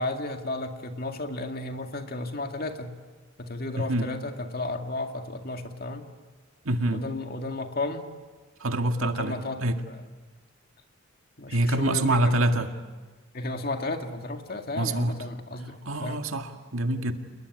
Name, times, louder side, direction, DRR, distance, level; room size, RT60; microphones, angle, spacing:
voice 1, 0.0-2.9 3.4-6.1 6.9-8.1 9.0-10.0 11.4-12.5 13.3-16.2, left 2 dB, 45° left, 5 dB, 2.1 m, -33 dB
voice 2, 3.8-4.1 6.7-7.0 8.6-9.8 11.5-12.7 14.8-15.1 15.9-17.1, right 1 dB, 80° right, 6 dB, 2.0 m, -25 dB
28.5 x 21.0 x 9.7 m, 1.3 s
head